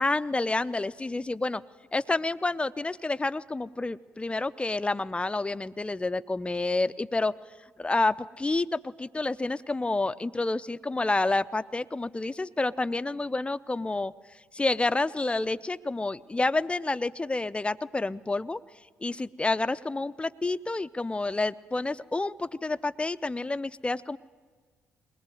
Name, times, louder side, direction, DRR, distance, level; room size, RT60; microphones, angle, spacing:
voice 1, 0.0-1.6 1.9-7.3 7.8-14.1 14.5-18.6 19.0-24.2, left 2 dB, 15° left, 15 dB, 0.7 m, -29 dB
21.5 x 20.5 x 9.3 m, 1.5 s
hypercardioid pair, 45°, 6 cm